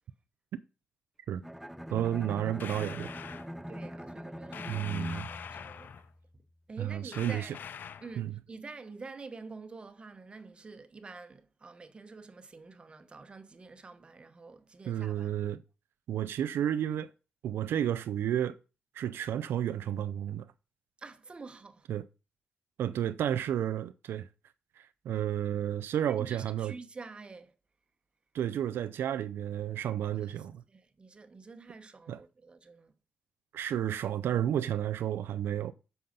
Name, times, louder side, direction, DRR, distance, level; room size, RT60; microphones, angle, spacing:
Bowed string instrument, 1.4-6.5, equal, ahead, 0.4 m, -42 dB
voice 1, 1.9-3.1 4.7-5.3 6.8-7.6 8.2-8.4 14.9-15.6 16.1-17.1 17.4-18.6 18.9-20.5 21.9-22.0 22.8-24.3 24.8-26.8 28.3-30.6 32.1-32.2 33.5-35.7, right 10 dB, 90° right, 0.4 m, -32 dB
sound 1, 2.6-3.5 4.5-6.1 7.1-8.2, left 7 dB, 60° left, 0.4 m, -44 dB
voice 2, 3.7-5.9 6.7-7.6 8.0-15.4 21.0-21.9 26.2-27.5 30.7-32.9, right 4 dB, 30° right, 1.0 m, -48 dB
7.8 x 5.5 x 5.3 m
wide cardioid pair, 140°, 4 cm